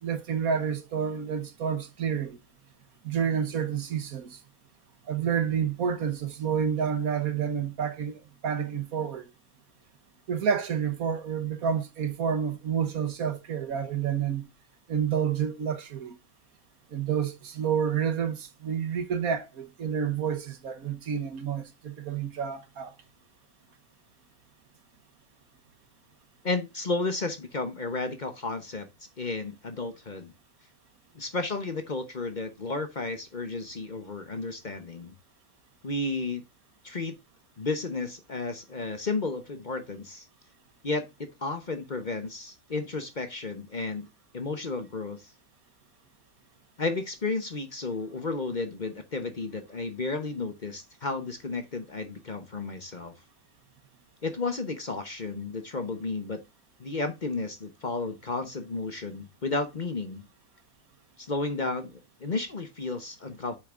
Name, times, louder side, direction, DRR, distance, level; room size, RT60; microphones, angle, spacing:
voice 1, 0.0-2.4 3.0-4.4 5.1-9.2 10.3-14.5 14.9-16.1 16.9-22.9, right 7 dB, 75° right, 1.6 m, -29 dB
voice 2, 26.4-28.9 29.2-30.3 31.1-35.1 35.8-36.4 36.8-37.2 37.6-40.3 40.8-44.1 44.3-45.3 46.8-53.1 54.2-56.4 56.8-60.3 61.2-63.6, left 3 dB, 35° left, 1.0 m, -32 dB
8.1 x 6.5 x 2.5 m
omnidirectional pair, 1.5 m